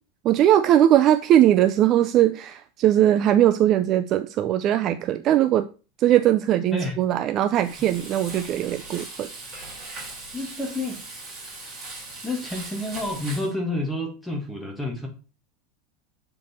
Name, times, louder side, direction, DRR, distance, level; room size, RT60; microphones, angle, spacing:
voice 1, 0.2-5.7 6.0-9.3, right 11 dB, 30° right, 10 dB, 0.3 m, -20 dB
Frying (food), 7.6-13.5, right 3 dB, 15° right, 3.0 m, -39 dB
voice 2, 10.3-11.0 12.2-15.1, left 1 dB, 5° left, 1 dB, 1.5 m, -29 dB
7.3 x 4.4 x 4.2 m, 0.34 s
supercardioid pair, 170°, 0 cm